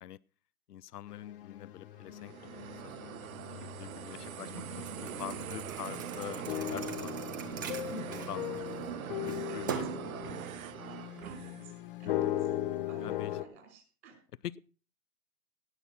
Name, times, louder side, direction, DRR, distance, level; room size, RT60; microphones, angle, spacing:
voice 1, 0.7-3.1 3.5-4.6 5.0-7.2 7.5-8.5 9.1-9.8 10.2-10.5 13.0-13.3, left 12 dB, 85° left, 21 dB, 0.7 m, -45 dB
sound 1, 1.1-13.5, left 13 dB, 35° left, 0.9 m, -39 dB
sound 2, 2.0-11.8, right 12 dB, 65° right, 0.6 m, -42 dB
voice 2, 4.7-5.5 8.8-9.9 11.2-11.7 12.0-12.5 12.9-14.2, right 5 dB, 50° right, 5 dB, 5.6 m, -52 dB
Thump thud, 4.8-8.9 9.3-10.1, right 7 dB, 15° right, 0.5 m, -42 dB
17.5 x 6.4 x 6.0 m, 0.40 s
hypercardioid pair, 150°, 46 cm